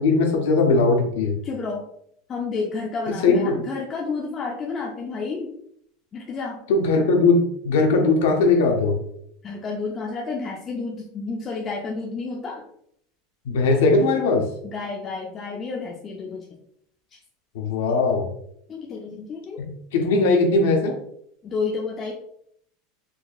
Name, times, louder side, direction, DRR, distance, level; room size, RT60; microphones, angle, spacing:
voice 1, 0.0-1.4 3.2-3.6 6.7-9.0 13.5-14.4 17.5-18.2 19.9-20.9, left 3 dB, 85° left, 2 dB, 0.6 m, -19 dB
voice 2, 1.4-1.8 2.3-5.5 6.1-6.6 9.4-12.6 14.6-16.5 17.1-17.2 18.7-19.6 21.4-22.1, left 4 dB, 25° left, -1 dB, 0.4 m, -30 dB
3.9 x 2.6 x 2.3 m, 0.71 s
supercardioid pair, 155°, 0 cm